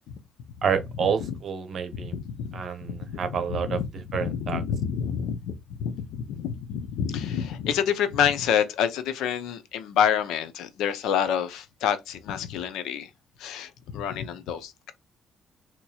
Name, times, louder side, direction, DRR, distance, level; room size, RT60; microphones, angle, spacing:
voice 1, 0.6-2.1 2.5-3.8 4.1-4.6, right 7 dB, 50° right, 0.8 m, -28 dB
voice 2, 1.9-3.8 4.2-13.1 13.4-14.9, left 8 dB, 85° left, 0.6 m, -28 dB
4.2 x 2.9 x 2.3 m
cardioid pair, 120°, 0 cm